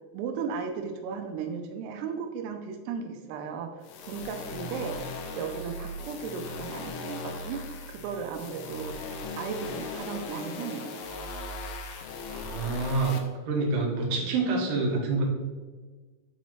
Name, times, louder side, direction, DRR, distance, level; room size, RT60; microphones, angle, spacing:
voice 1, 0.1-5.0 5.3-9.0 9.4-11.0, right 6 dB, 85° right, 5 dB, 2.6 m, -36 dB
sound 1, 3.8-13.2, left 3 dB, 80° left, 2.3 m, -38 dB
voice 2, 12.3-13.1 13.5-15.2, right 3 dB, 70° right, -2 dB, 2.4 m, -27 dB
8.2 x 4.1 x 3.0 m, 1.3 s
omnidirectional pair, 4.7 m